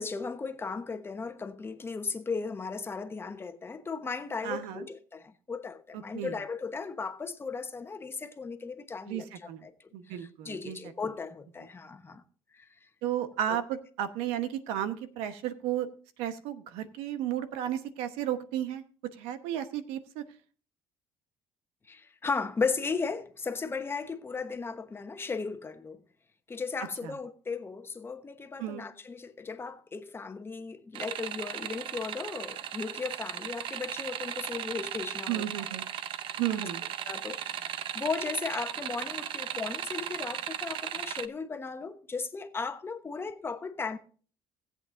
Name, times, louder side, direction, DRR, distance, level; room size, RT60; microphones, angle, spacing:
voice 1, 0.0-9.7 10.1-12.2 12.5-12.7 13.5-13.6 21.9-26.0 26.5-35.5 35.7-35.8 36.5-36.7 37.1-44.0, left 4 dB, 25° left, 1.0 m, -36 dB
voice 2, 4.4-4.8 6.1-6.3 9.1-9.6 9.9-10.8 13.0-15.9 16.2-18.8 19.2-20.2 27.0-27.1 28.6-28.8 35.3-35.8 36.4-36.8, right 11 dB, 85° right, 1.0 m, -33 dB
sound 1, 31.0-41.3, right 10 dB, 60° right, 0.7 m, -37 dB
18.5 x 8.1 x 2.5 m
cardioid pair, 100°, 10 cm